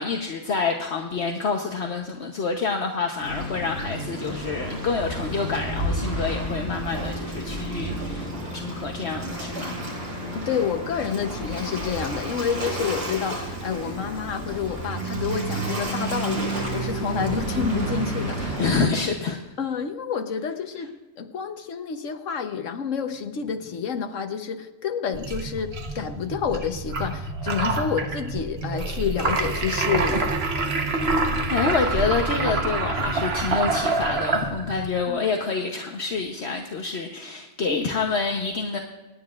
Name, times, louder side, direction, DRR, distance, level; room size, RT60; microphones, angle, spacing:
voice 1, 0.0-9.8 18.6-19.4 31.5-38.8, left 4 dB, 60° left, 2 dB, 1.2 m, -27 dB
Waves surf, 3.2-18.8, right 1 dB, 75° right, 4.3 m, -31 dB
voice 2, 10.3-18.6 19.6-30.4 35.1-35.2 37.7-37.9, left 7 dB, 85° left, 7 dB, 1.3 m, -29 dB
sound 1, 25.1-34.9, right 3 dB, 55° right, 1.4 m, -26 dB
28.5 x 9.7 x 2.5 m, 1.2 s
omnidirectional pair, 1.3 m